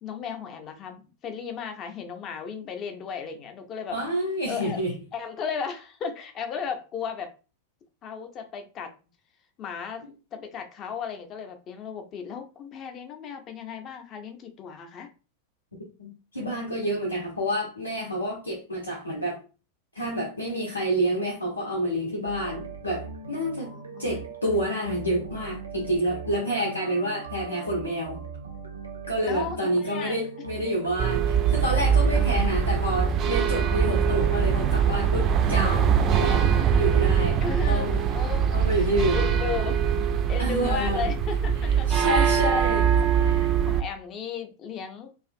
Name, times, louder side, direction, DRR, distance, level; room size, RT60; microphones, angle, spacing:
voice 1, 0.0-4.0 4.5-4.8 5.1-7.3 8.0-8.9 9.6-10.0 10.3-15.1 23.6-24.2 29.3-30.2 32.1-32.5 37.4-38.9 39.1-39.8 40.3-42.1 42.4-43.1 43.6-45.1, left 6 dB, 30° left, 0.5 m, -35 dB
voice 2, 3.9-4.9 16.0-19.4 19.9-23.7 24.0-28.3 29.1-36.5 36.8-37.4 37.7-38.0 38.5-39.3 40.4-41.1 41.6-43.5, equal, 80° left, 0.6 m, -28 dB
sound 1, 22.2-35.1, right 5 dB, 80° right, 0.5 m, -40 dB
sound 2, 31.0-43.8, right 7 dB, 30° right, 0.3 m, -23 dB
2.4 x 2.4 x 2.5 m
figure-of-eight pair, 90°, 0 cm